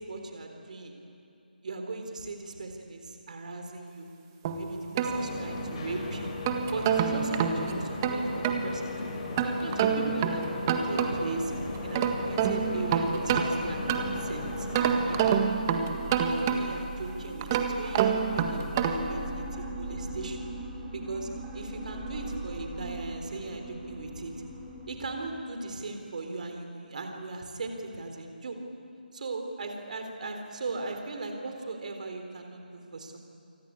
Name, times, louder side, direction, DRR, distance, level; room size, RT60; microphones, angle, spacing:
voice 1, 0.1-0.9 1.6-4.1 4.4-6.3 6.7-8.9 9.4-11.5 11.8-14.7 15.0-15.4 16.2-20.5 20.9-24.3 24.9-28.6 29.1-33.2, right 3 dB, 50° right, 4 dB, 3.8 m, -38 dB
sound 1, 4.5-5.8 6.2-8.7 9.4-11.4 11.8-14.3 14.7-16.9 17.4-19.2, right 7 dB, 20° right, 1.7 m, -28 dB
sound 2, 5.0-15.4, left 3 dB, 35° left, 5.3 m, -37 dB
sound 3, 11.3-25.4, right 1 dB, 5° right, 7.0 m, -41 dB
27.0 x 24.0 x 8.8 m, 2.7 s
figure-of-eight pair, 160°, 5 cm